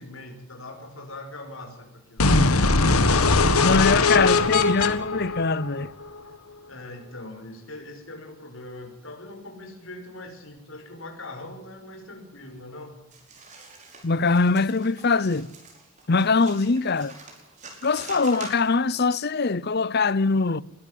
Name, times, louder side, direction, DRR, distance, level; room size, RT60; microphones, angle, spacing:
voice 1, 0.0-2.5 6.7-13.0, left 2 dB, 65° left, 5.7 m, -41 dB
sound 1, 2.2-6.2, left 3 dB, 80° left, 1.6 m, -20 dB
voice 2, 3.6-5.9 14.0-15.5 16.1-17.2 17.8-20.6, left 4 dB, 45° left, 0.7 m, -22 dB
sound 2, 13.1-19.0, right 3 dB, 35° right, 5.2 m, -45 dB
22.0 x 13.0 x 9.4 m
head